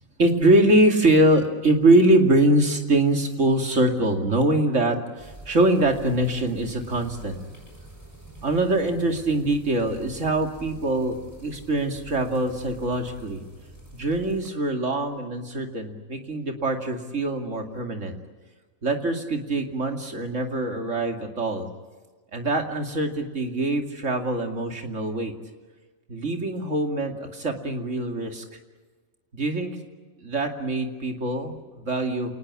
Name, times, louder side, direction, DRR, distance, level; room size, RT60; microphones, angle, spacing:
voice 1, 0.2-7.4 8.4-13.4 13.9-18.1 18.8-21.7 22.3-25.3 26.1-28.4 29.3-29.7 30.2-32.3, right 1 dB, 65° right, 4 dB, 2.8 m, -23 dB
sound 1, 5.2-14.5, right 1 dB, 10° right, 6.2 m, -46 dB
28.0 x 19.5 x 8.5 m, 1.3 s
omnidirectional pair, 1.4 m